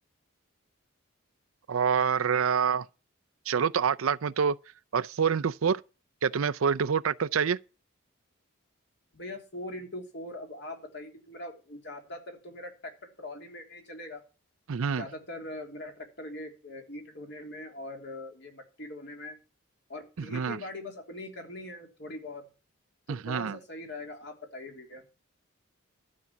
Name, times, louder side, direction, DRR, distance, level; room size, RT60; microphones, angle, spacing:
voice 1, 1.7-2.8 3.5-4.6 4.9-5.8 6.2-7.6 14.7-15.0 20.2-20.6 23.1-23.6, right 6 dB, 80° right, 0.5 m, -26 dB
voice 2, 9.1-14.2 14.9-19.4 19.9-22.5 23.1-25.0, left 1 dB, 55° left, 3.1 m, -42 dB
12.0 x 6.3 x 7.1 m
head